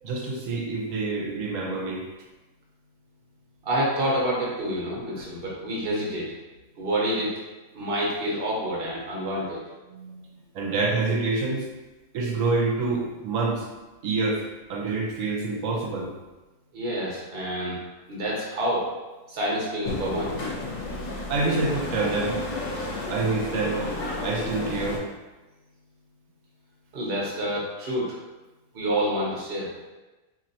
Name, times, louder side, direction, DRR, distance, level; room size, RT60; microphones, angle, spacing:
voice 1, 0.0-2.0 9.9-10.2 10.5-11.7 12.1-13.7 14.0-14.4 14.7-16.1 21.3-22.4 23.1-23.8 24.2-25.0, right 3 dB, 70° right, 0 dB, 1.1 m, -27 dB
voice 2, 3.6-6.3 6.8-7.4 7.7-9.6 16.7-17.8 18.1-18.9 19.3-20.4 26.9-28.2 28.7-29.7, right 1 dB, 50° right, -4 dB, 1.1 m, -28 dB
sound 1, 19.8-25.0, left 2 dB, 75° left, 1.2 m, -32 dB
4.3 x 2.9 x 2.7 m, 1.1 s
omnidirectional pair, 1.4 m